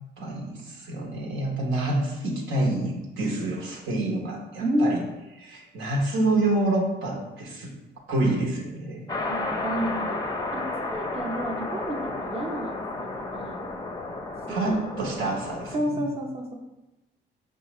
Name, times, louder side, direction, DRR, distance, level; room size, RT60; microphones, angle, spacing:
voice 1, 0.2-5.0 5.4-7.7 8.1-9.0 14.5-15.7, right 2 dB, 85° right, -2 dB, 1.0 m, -27 dB
voice 2, 4.6-5.0 9.3-13.7 14.5-14.8 15.7-16.5, equal, 30° right, 0 dB, 0.6 m, -30 dB
sound 1, 9.1-15.8, left 2 dB, 20° left, 0.5 m, -32 dB
5.4 x 2.4 x 3.0 m, 1.0 s
cardioid pair, 90°, 20 cm